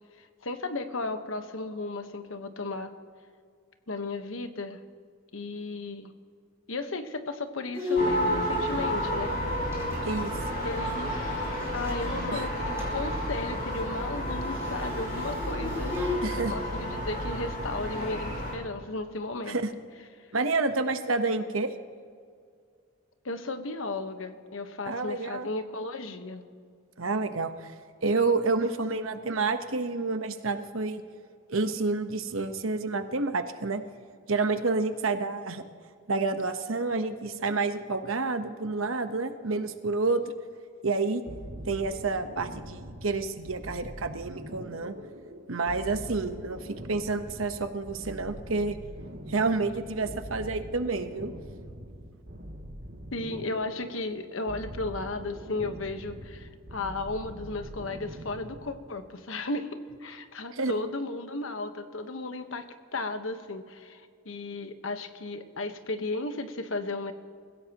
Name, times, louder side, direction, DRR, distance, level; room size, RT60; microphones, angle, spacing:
voice 1, 0.2-2.9 3.9-4.8 5.3-6.1 6.7-9.4 10.6-19.6 23.2-26.4 53.1-59.7 60.0-62.7 62.9-67.1, left 3 dB, 80° left, 8 dB, 1.2 m, -35 dB
Bowed string instrument, 7.7-12.1 12.4-12.5 12.7-13.1 13.3-16.2, left 3 dB, 15° right, 4.8 m, -35 dB
sound 1, 7.9-18.5, equal, 45° left, 5.1 m, -31 dB
voice 2, 10.0-10.3 12.0-12.4 16.2-16.5 19.5-19.7 20.3-21.7 24.8-25.5 27.0-27.7 28.0-31.0 31.5-33.8 34.3-35.6 36.1-40.2 40.8-41.2 41.6-44.9 45.5-48.8 49.3-51.3 60.5-60.7, right 3 dB, 85° right, 8 dB, 1.1 m, -29 dB
sound 2, 41.3-58.9, equal, 60° right, 2.5 m, -43 dB
28.5 x 16.0 x 3.0 m, 2.2 s
head